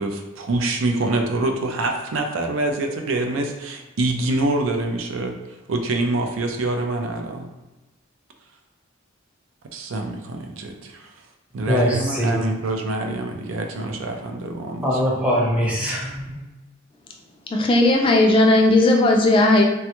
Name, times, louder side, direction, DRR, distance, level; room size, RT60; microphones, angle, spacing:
voice 1, 0.0-7.5 9.7-11.1 11.5-15.0, right 2 dB, 80° right, 4 dB, 0.4 m, -25 dB
voice 2, 11.7-12.4 14.8-16.4, equal, 5° right, -5 dB, 0.7 m, -22 dB
voice 3, 17.5-19.6, left 2 dB, 25° left, 1 dB, 0.3 m, -16 dB
3.3 x 2.2 x 2.9 m, 1.1 s
head